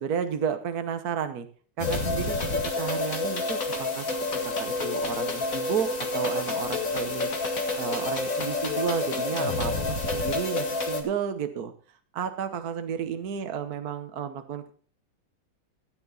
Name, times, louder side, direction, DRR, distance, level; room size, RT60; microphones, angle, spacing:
voice 1, 0.0-1.5 1.8-4.1 4.4-7.3 7.8-11.7 12.1-14.7, right 7 dB, 55° right, 8 dB, 1.4 m, -32 dB
sound 1, 1.8-11.0, left 3 dB, 45° left, 2.5 m, -29 dB
15.5 x 9.8 x 4.0 m, 0.42 s
omnidirectional pair, 2.1 m